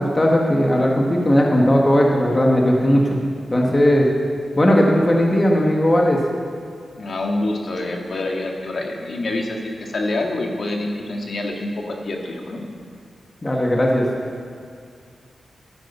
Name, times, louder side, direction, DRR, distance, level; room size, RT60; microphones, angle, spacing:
voice 1, 0.0-3.1 3.5-4.1 4.6-6.2 13.4-14.1, equal, 20° left, -1 dB, 1.5 m, -17 dB
voice 2, 7.0-12.6, left 2 dB, 50° left, 1 dB, 1.8 m, -26 dB
14.0 x 10.5 x 6.9 m, 2.3 s
wide cardioid pair, 165°, 0 cm